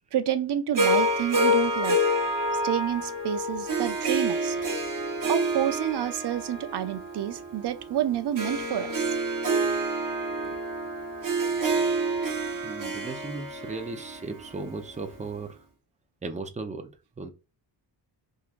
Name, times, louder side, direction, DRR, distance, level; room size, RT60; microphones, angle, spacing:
voice 1, 0.1-2.0 2.6-4.6 5.3-9.1, right 10 dB, 70° right, 0.6 m, -29 dB
Harp, 0.8-15.1, right 1 dB, 45° right, 0.9 m, -28 dB
voice 2, 12.6-15.6 16.2-16.9 17.2-17.3, right 3 dB, 15° right, 0.6 m, -36 dB
3.7 x 3.0 x 2.5 m
wide cardioid pair, 95°, 43 cm